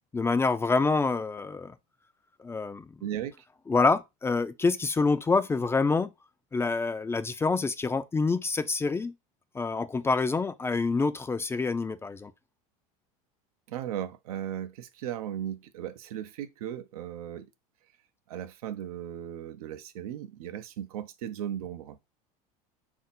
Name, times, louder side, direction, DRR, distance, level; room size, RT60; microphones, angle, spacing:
voice 1, 0.1-1.7 2.4-2.9 3.7-6.1 6.5-9.1 9.5-12.3, left 4 dB, 15° left, 0.3 m, -26 dB
voice 2, 3.0-3.4 13.7-17.5 18.3-22.0, right 10 dB, 85° right, 0.5 m, -37 dB
3.5 x 2.7 x 4.1 m
supercardioid pair, 105°, 18 cm